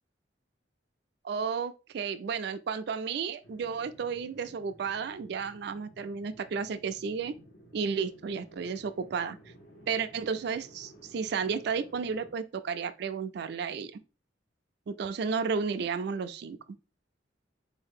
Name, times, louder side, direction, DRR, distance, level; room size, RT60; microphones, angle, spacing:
voice 1, 1.2-7.3 7.7-9.4 9.9-14.0 14.9-16.6, right 5 dB, 60° right, 0.3 m, -33 dB
sound 1, 3.4-12.3, right 1 dB, 75° left, 1.4 m, -55 dB
3.9 x 2.8 x 3.5 m
head